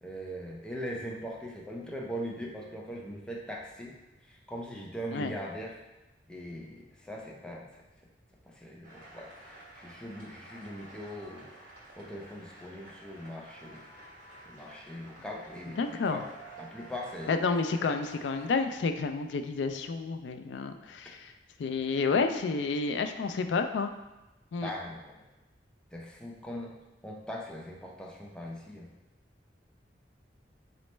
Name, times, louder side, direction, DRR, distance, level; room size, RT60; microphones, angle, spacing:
voice 1, 0.0-3.9 4.2-5.8 6.3-7.8 8.4-11.5 12.0-13.9 14.5-16.3 16.6-17.3 24.6-25.2 25.9-26.8 27.0-28.9, equal, 5° left, -3 dB, 0.5 m, -41 dB
sound 1, 8.8-18.6, right 2 dB, 55° right, 1.3 m, -51 dB
voice 2, 15.8-16.2 17.3-21.3 21.6-23.9 24.5-24.7, left 4 dB, 85° left, 7 dB, 0.3 m, -30 dB
4.0 x 3.1 x 3.2 m, 1.0 s
head